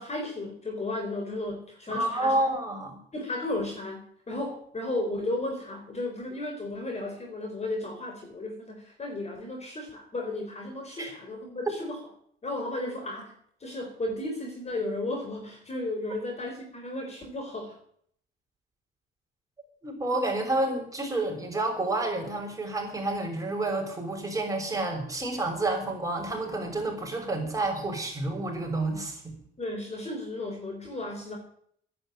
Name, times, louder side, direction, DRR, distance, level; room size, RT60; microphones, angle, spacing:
voice 1, 0.0-2.4 3.1-12.0 12.4-13.3 13.6-17.8 29.6-31.4, left 2 dB, 35° left, 3 dB, 4.3 m, -34 dB
voice 2, 1.9-3.0 11.0-11.2 19.8-29.2, right 2 dB, 15° right, 1 dB, 6.4 m, -29 dB
12.0 x 11.0 x 9.0 m, 0.62 s
cardioid pair, 90°, 20 cm